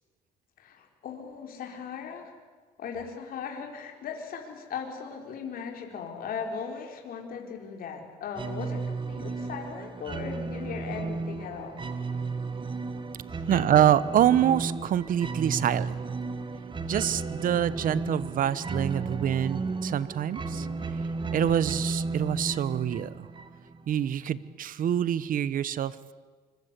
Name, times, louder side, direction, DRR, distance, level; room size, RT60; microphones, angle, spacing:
voice 1, 0.6-2.3 2.8-11.8 13.3-13.4, left 6 dB, 60° left, 2 dB, 4.3 m, -38 dB
sound 1, 8.3-23.8, right 3 dB, 30° right, 2.0 m, -34 dB
voice 2, 13.5-16.0 16.9-20.7 21.3-23.3 23.9-26.1, right 10 dB, 55° right, 17 dB, 1.2 m, -26 dB
25.5 x 24.5 x 8.3 m, 1.4 s
cardioid pair, 110°, 17 cm